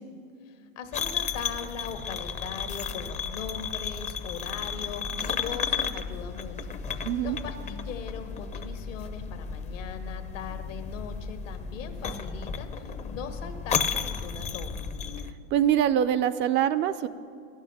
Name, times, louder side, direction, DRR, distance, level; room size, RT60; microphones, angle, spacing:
voice 1, 0.5-14.9, left 6 dB, 75° left, 7 dB, 1.6 m, -40 dB
sound 1, 0.9-15.3, left 6 dB, 20° left, 0.6 m, -33 dB
voice 2, 7.0-7.4 15.5-17.1, right 10 dB, 30° right, 12 dB, 0.4 m, -24 dB
11.5 x 7.3 x 9.9 m, 2.4 s
hypercardioid pair, 100°, 39 cm